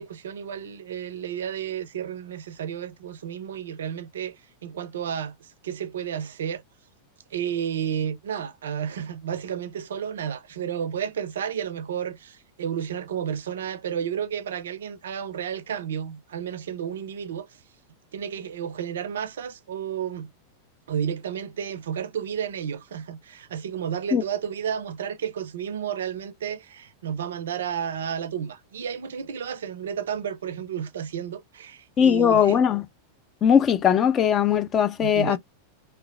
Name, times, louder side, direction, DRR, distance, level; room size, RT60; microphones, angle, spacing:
voice 1, 0.0-5.3 5.6-6.6 7.3-17.5 18.1-20.3 20.9-32.6 35.0-35.4, right 8 dB, 60° right, 0.4 m, -32 dB
voice 2, 32.0-32.9 33.4-35.4, left 8 dB, 25° left, 0.3 m, -20 dB
2.9 x 2.0 x 2.3 m
figure-of-eight pair, 90°, 0 cm